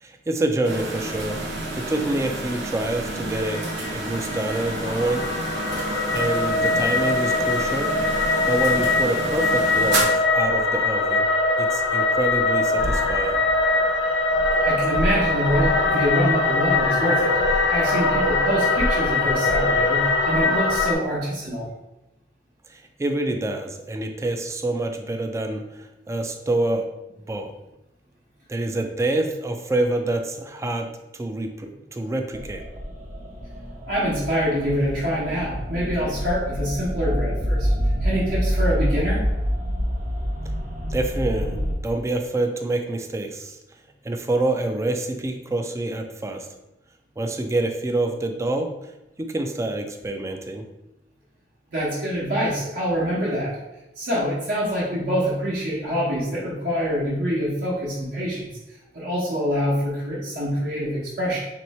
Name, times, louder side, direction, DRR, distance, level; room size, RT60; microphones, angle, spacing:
voice 1, 0.0-1.4 1.7-5.3 6.1-8.0 8.5-11.3 11.6-13.4 22.7-26.9 27.3-27.5 28.5-32.6 40.9-43.6 44.0-46.5 47.2-48.7 49.2-50.6, right 2 dB, 15° right, 5 dB, 0.3 m, -27 dB
sound 1, 0.6-10.0, right 2 dB, 90° right, 0.8 m, -30 dB
sound 2, 3.4-20.9, left 3 dB, 80° left, 0.6 m, -22 dB
voice 2, 14.6-21.7 33.9-37.7 38.0-39.2 51.7-53.5 54.0-58.5 58.9-61.4, equal, 65° right, -8 dB, 1.1 m, -25 dB
sound 3, 32.3-41.7, equal, 45° right, 0.8 m, -26 dB
3.1 x 3.0 x 4.2 m, 0.95 s
head